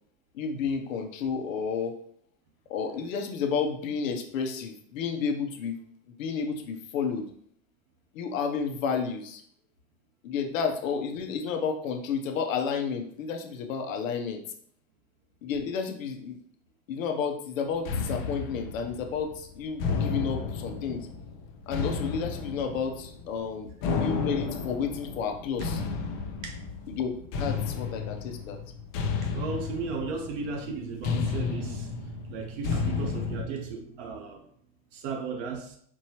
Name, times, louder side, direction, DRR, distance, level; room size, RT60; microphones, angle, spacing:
voice 1, 0.3-2.0 2.7-5.8 6.1-7.3 8.1-9.4 10.2-14.4 15.4-16.4 16.9-21.1 21.7-23.7 24.0-25.8 26.9-28.6, left 6 dB, 80° left, 5 dB, 0.8 m, -31 dB
sound 1, 17.9-33.5, left 5 dB, 50° left, 0.6 m, -32 dB
voice 2, 29.2-34.4 34.9-35.8, right 4 dB, 65° right, 3 dB, 1.2 m, -35 dB
4.5 x 3.1 x 2.9 m, 0.64 s
hypercardioid pair, 110°, 39 cm